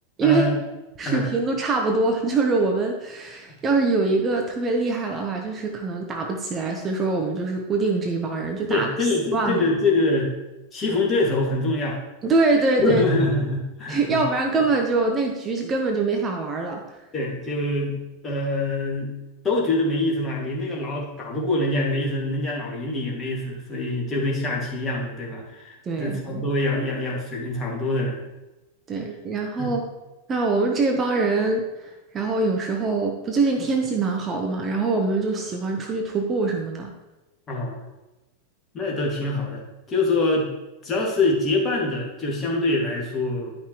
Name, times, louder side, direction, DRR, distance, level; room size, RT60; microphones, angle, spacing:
voice 1, 0.2-0.6 1.1-1.2 8.7-10.3 10.7-12.0 12.8-14.2 17.1-19.1 19.4-28.2 29.6-29.7 37.5-37.8 38.7-40.5 40.8-43.6, left 2 dB, 25° left, -3 dB, 2.2 m, -25 dB
voice 2, 1.0-9.7 12.2-13.0 13.9-17.1 25.8-26.5 28.9-29.8 30.3-36.9, right 3 dB, 25° right, 3 dB, 0.9 m, -24 dB
11.0 x 5.7 x 3.1 m, 1.0 s
figure-of-eight pair, 90°, 0 cm